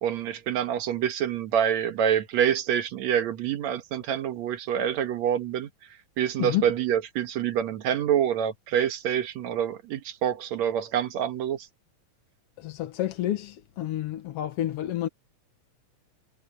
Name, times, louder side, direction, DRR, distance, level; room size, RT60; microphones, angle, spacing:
voice 1, 0.0-5.7 6.2-11.7, right 9 dB, 70° right, 2.5 m, -26 dB
voice 2, 12.6-15.1, left 13 dB, 65° left, 1.8 m, -29 dB
omnidirectional pair, 3.3 m